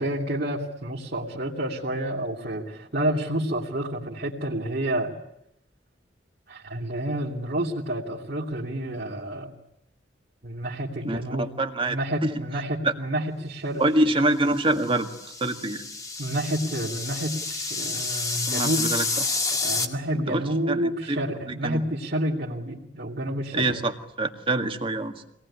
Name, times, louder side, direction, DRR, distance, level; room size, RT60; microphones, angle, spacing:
voice 1, 0.0-5.1 6.5-9.5 10.4-11.5 11.9-13.8 16.2-18.9 19.6-23.7, right 1 dB, 55° right, -4 dB, 2.8 m, -29 dB
voice 2, 11.0-12.0 12.2-12.4 12.8-12.9 13.8-15.1 15.4-15.8 18.5-19.1 20.3-21.8 23.5-25.2, right 2 dB, 30° right, 5 dB, 1.9 m, -26 dB
sound 1, 14.7-19.9, left 3 dB, 20° left, 1.9 m, -29 dB
25.5 x 19.0 x 9.8 m, 0.79 s
head